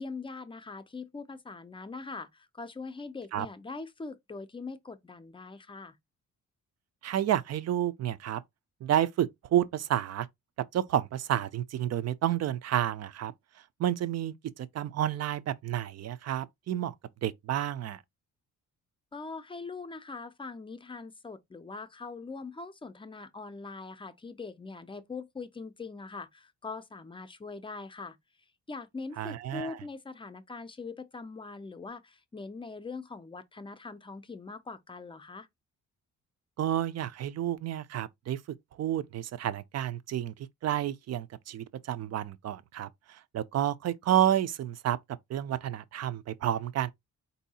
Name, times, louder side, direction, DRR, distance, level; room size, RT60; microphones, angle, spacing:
voice 1, 0.0-6.0 19.1-28.2 28.7-35.5, left 4 dB, 15° left, 0.5 m, -42 dB
voice 2, 7.0-8.4 8.8-10.3 10.7-13.3 13.8-16.9 17.2-18.0 29.2-29.8 36.6-38.4 38.8-45.0 45.3-46.9, right 11 dB, 60° right, 0.5 m, -30 dB
4.6 x 2.7 x 4.1 m
wide cardioid pair, 155°, 30 cm